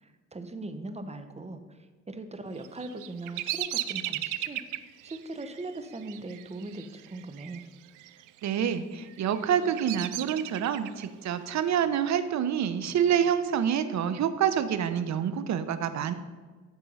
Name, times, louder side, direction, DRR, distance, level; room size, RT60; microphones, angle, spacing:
voice 1, 0.0-1.8 2.1-4.6 5.0-7.6, right 2 dB, 20° right, 8 dB, 1.0 m, -40 dB
Bird vocalization bird call bird song, 2.6-7.6 7.9-8.5 9.1-11.1, right 15 dB, 90° right, 0.5 m, -36 dB
voice 2, 8.4-16.1, right 8 dB, 65° right, 11 dB, 0.8 m, -27 dB
13.0 x 4.5 x 5.5 m, 1.4 s
cardioid pair, 90°, 30 cm